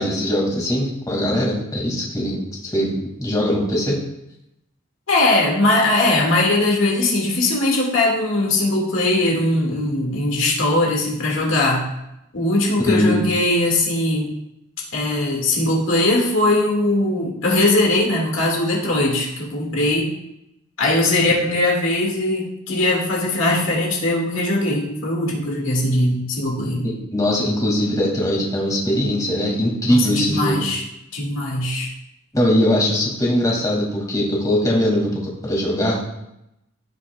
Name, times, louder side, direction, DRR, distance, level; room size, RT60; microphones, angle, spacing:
voice 1, 0.0-2.9 3.2-4.0 12.9-13.2 26.8-30.6 32.3-36.0, left 1 dB, 20° left, -3 dB, 2.2 m, -21 dB
voice 2, 5.1-11.9 12.3-14.3 14.9-20.2 20.8-26.9 29.9-30.8 31.1-31.9, left 2 dB, 80° left, -2 dB, 2.0 m, -20 dB
15.5 x 5.9 x 2.3 m, 0.85 s
head